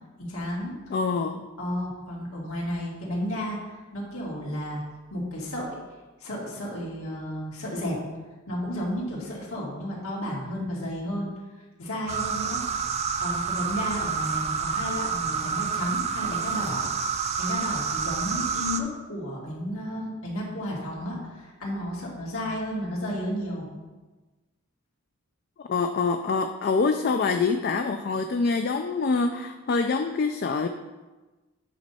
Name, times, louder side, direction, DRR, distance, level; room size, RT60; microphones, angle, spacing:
voice 1, 0.2-0.9 1.6-4.8 5.1-5.8 6.2-8.0 8.5-11.3 11.8-12.9 13.2-16.8 17.4-23.7, equal, 80° left, -4 dB, 2.4 m, -32 dB
voice 2, 0.9-1.5 25.7-30.7, left 4 dB, 45° left, 7 dB, 0.3 m, -25 dB
sound 1, 12.1-18.8, right 6 dB, 30° right, 0.4 m, -28 dB
8.9 x 5.3 x 4.2 m, 1.2 s
head